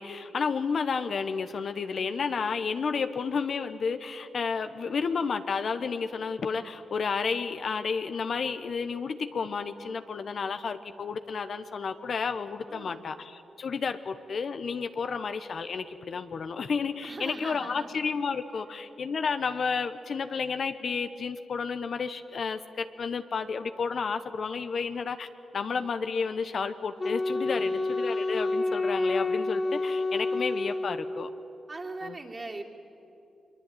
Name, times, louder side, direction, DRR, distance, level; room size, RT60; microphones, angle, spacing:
voice 1, 0.0-25.3 25.5-31.3 32.0-32.2, left 5 dB, 60° left, 10 dB, 1.1 m, -31 dB
voice 2, 12.7-13.2 17.0-17.9 27.5-27.8 31.7-32.6, right 2 dB, 35° right, 1 dB, 3.2 m, -40 dB
Wind instrument woodwind instrument, 27.0-31.4, left 2 dB, 40° left, 1.9 m, -29 dB
23.0 x 22.5 x 9.3 m, 3.0 s
cardioid pair, 55°, 0 cm